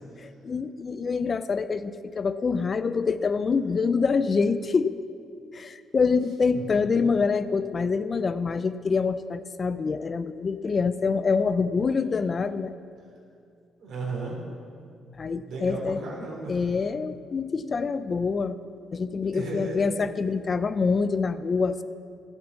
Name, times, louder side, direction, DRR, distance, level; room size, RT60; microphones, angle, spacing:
voice 1, 0.2-5.0 5.5-12.7 15.2-16.0 16.5-18.6 18.9-21.8, left 5 dB, 40° left, 13 dB, 0.4 m, -26 dB
voice 2, 13.8-14.4 15.5-16.6 19.3-19.8, right 3 dB, 70° right, -2 dB, 3.7 m, -34 dB
11.5 x 8.2 x 7.1 m, 2.3 s
cardioid pair, 90°, 0 cm